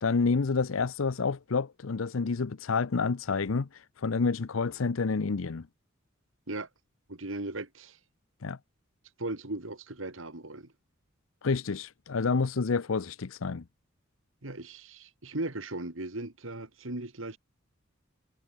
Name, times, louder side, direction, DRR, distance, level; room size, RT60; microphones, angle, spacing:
voice 1, 0.0-5.7 8.4-8.6 11.4-13.6, left 4 dB, 80° left, 0.6 m, -29 dB
voice 2, 7.1-8.0 9.2-10.7 14.4-17.4, right 2 dB, 75° right, 2.5 m, -37 dB
head